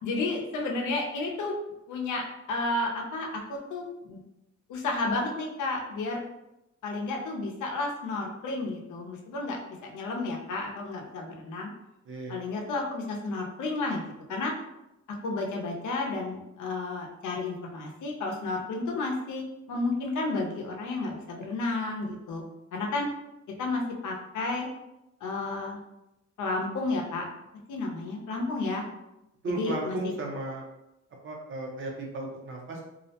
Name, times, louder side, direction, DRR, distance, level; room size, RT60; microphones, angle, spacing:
voice 1, 0.0-1.6 1.9-2.2 2.5-4.2 4.7-6.2 6.8-11.7 12.3-14.5 15.2-19.4 19.7-22.4 22.7-23.1 23.6-24.7 25.2-25.8 26.4-27.2 27.7-28.8 29.5-30.1, left 2 dB, 80° left, 0 dB, 0.6 m, -32 dB
voice 2, 29.4-30.6 31.2-32.8, right 2 dB, 45° right, -1 dB, 0.5 m, -35 dB
2.4 x 2.1 x 2.7 m, 0.89 s
wide cardioid pair, 175°, 30 cm